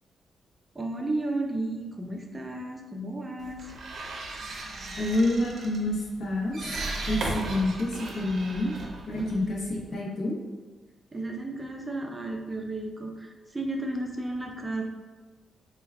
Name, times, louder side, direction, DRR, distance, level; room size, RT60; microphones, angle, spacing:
voice 1, 0.7-3.7 9.1-10.0 11.1-14.8, right 2 dB, 15° right, 1 dB, 0.4 m, -33 dB
sound 1, 3.4-9.9, right 2 dB, 65° right, 0.5 m, -36 dB
voice 2, 5.0-6.6 7.1-8.7 9.1-10.4, left 1 dB, 65° left, -2 dB, 0.7 m, -28 dB
4.4 x 2.2 x 2.3 m, 1.3 s
cardioid pair, 100°, 0 cm